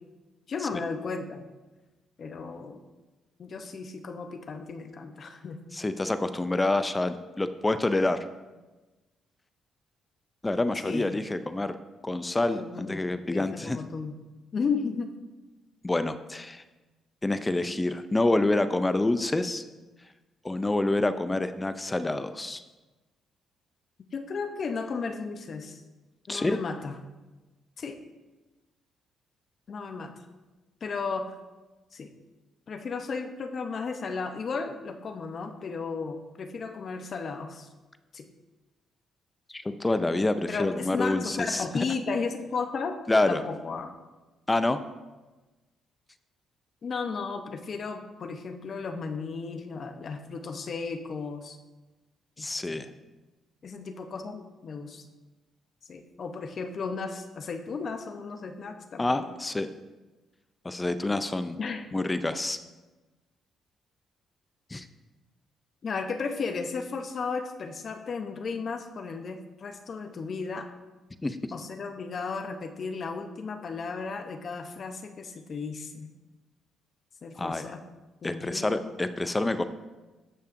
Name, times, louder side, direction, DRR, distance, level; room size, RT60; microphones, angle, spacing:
voice 1, 0.5-1.4 2.2-2.8 3.4-5.6 10.8-11.2 12.5-14.2 14.5-15.1 24.1-25.8 26.3-27.0 27.8-28.0 29.7-30.1 30.8-31.3 31.9-32.1 32.7-37.7 38.1-38.3 40.5-43.0 43.3-43.9 46.8-51.6 52.4-52.8 53.6-55.1 55.9-59.3 61.6-61.9 65.8-70.7 71.5-76.1 77.2-77.8 78.2-78.9, left 4 dB, 50° left, 7 dB, 0.7 m, -34 dB
voice 2, 5.7-8.3 10.4-11.8 12.0-13.8 15.8-16.6 17.2-19.6 20.4-22.6 26.3-26.6 39.5-41.9 43.1-43.4 44.5-44.8 52.4-52.9 59.0-59.7 60.6-61.6 61.9-62.6 64.7-64.9 71.2-71.5 77.4-77.7 78.2-79.6, left 2 dB, 15° left, 11 dB, 0.4 m, -27 dB
13.0 x 5.6 x 2.6 m, 1.2 s
cardioid pair, 90°, 0 cm